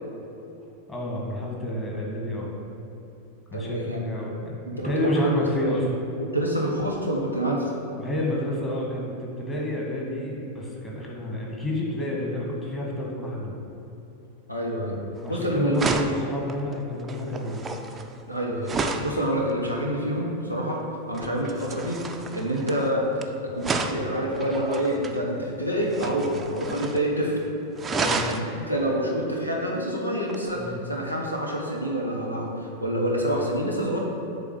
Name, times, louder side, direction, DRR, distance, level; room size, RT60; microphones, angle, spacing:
voice 1, 0.9-2.5 3.5-5.9 8.0-13.6 15.2-17.6 21.1-21.3 27.9-28.2 30.6-30.8, left 1 dB, 15° left, -3 dB, 1.9 m, -29 dB
voice 2, 3.5-4.1 4.7-5.5 6.2-7.7 14.5-15.0 15.3-15.9 18.3-18.7 19.0-20.8 21.1-22.0 22.3-23.1 23.4-27.4 28.3-34.0, right 1 dB, 85° left, -2 dB, 1.1 m, -27 dB
sound 1, 15.2-15.4 15.7-19.2 21.1-23.2 23.6-25.2 25.9-27.1 27.3-27.4 27.8-28.5 30.3-30.4, right 3 dB, 20° right, 0.5 m, -31 dB
8.1 x 3.9 x 6.8 m, 3.0 s
figure-of-eight pair, 90°, 0 cm